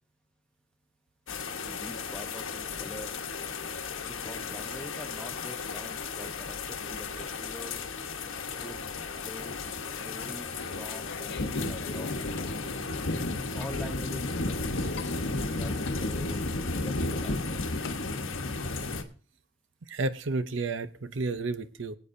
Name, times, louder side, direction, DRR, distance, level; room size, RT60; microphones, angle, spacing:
sound 1, 1.3-19.0, left 3 dB, 75° left, 1.2 m, -34 dB
voice 1, 1.6-3.2 4.0-7.8 8.6-8.8 9.2-9.5 10.0-12.8 13.3-17.4, left 1 dB, 5° left, 5 dB, 0.9 m, -45 dB
sound 2, 9.6-18.0, left 6 dB, 55° left, 0.5 m, -47 dB
voice 2, 19.9-22.0, right 3 dB, 65° right, 12 dB, 0.7 m, -31 dB
24.0 x 8.5 x 2.6 m, 0.38 s
head